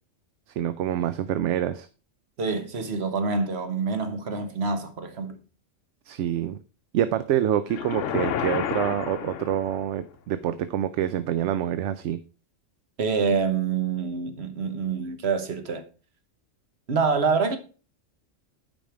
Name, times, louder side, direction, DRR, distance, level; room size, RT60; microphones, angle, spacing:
voice 1, 0.5-1.9 6.1-6.6 6.9-12.2, right 11 dB, 75° right, 0.9 m, -26 dB
voice 2, 2.4-5.4 13.0-15.8 16.9-17.6, right 5 dB, 60° right, 1.4 m, -26 dB
sound 1, 7.7-10.0, left 9 dB, 80° left, 1.0 m, -30 dB
8.9 x 5.2 x 4.9 m
omnidirectional pair, 1.3 m